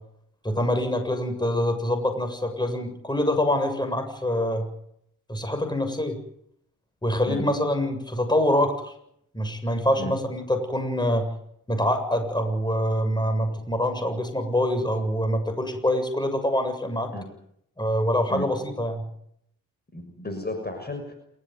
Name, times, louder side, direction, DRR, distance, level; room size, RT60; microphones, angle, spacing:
voice 1, 0.4-4.7 5.3-6.2 7.0-8.9 9.3-11.3 11.7-17.1 17.8-19.0, left 1 dB, 10° left, 6 dB, 7.3 m, -25 dB
voice 2, 19.9-21.1, left 1 dB, 25° left, 6 dB, 6.3 m, -33 dB
28.0 x 15.0 x 9.5 m, 0.72 s
cardioid pair, 60°, 35 cm